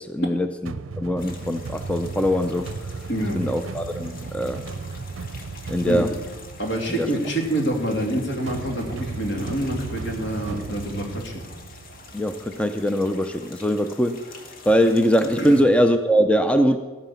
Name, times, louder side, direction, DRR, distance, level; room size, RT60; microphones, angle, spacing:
voice 1, 0.0-3.0 3.3-4.6 5.7-6.1 7.0-7.1 12.1-14.3 14.7-16.8, equal, 5° left, 8 dB, 0.5 m, -22 dB
sound 1, 0.7-12.6, right 4 dB, 85° right, 0.6 m, -36 dB
sound 2, 1.2-15.6, left 3 dB, 45° left, 1.9 m, -46 dB
voice 2, 3.1-3.4 5.9-6.1 6.6-11.4 15.4-15.6, right 1 dB, 65° left, 1 dB, 2.8 m, -26 dB
14.5 x 9.4 x 7.0 m, 1.4 s
head